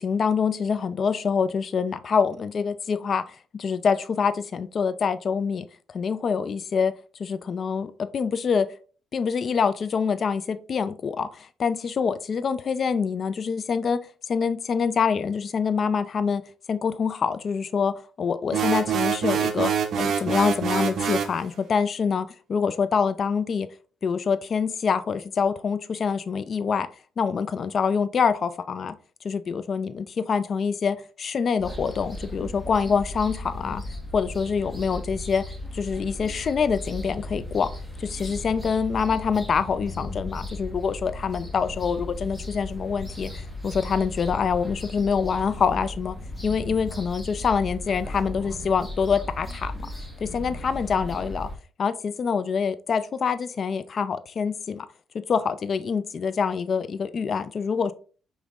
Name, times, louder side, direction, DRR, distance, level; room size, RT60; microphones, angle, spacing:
voice 1, 0.0-5.7 5.9-6.9 7.2-8.7 9.1-14.0 14.3-16.4 16.7-19.7 20.0-23.7 24.0-26.9 27.2-28.9 29.2-33.8 34.1-35.4 35.7-37.7 38.0-46.1 46.4-49.7 50.2-51.5 51.8-54.9 55.3-57.9, left 6 dB, 50° left, 0.4 m, -25 dB
sound 1, 18.5-21.4, right 7 dB, 65° right, 0.6 m, -25 dB
sound 2, 31.6-51.6, left 1 dB, ahead, 0.9 m, -36 dB
5.1 x 3.1 x 2.3 m
cardioid pair, 90°, 0 cm